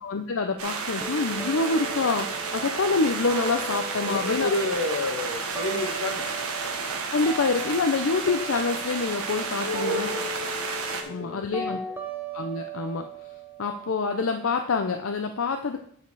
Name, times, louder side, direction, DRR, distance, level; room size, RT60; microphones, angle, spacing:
voice 1, 0.0-2.3 2.5-4.5 7.1-10.1 11.1-11.8 12.3-13.1 13.6-15.8, left 4 dB, 70° left, 5 dB, 0.6 m, -26 dB
sound 1, 0.6-11.0, right 4 dB, 90° right, 1.2 m, -32 dB
sound 2, 1.0-7.0 7.2-15.0, right 1 dB, 10° right, 0.8 m, -39 dB
voice 2, 4.0-6.3 9.6-10.5 11.0-11.8, left 2 dB, 90° left, 5 dB, 1.3 m, -30 dB
9.4 x 5.1 x 4.6 m, 0.62 s
head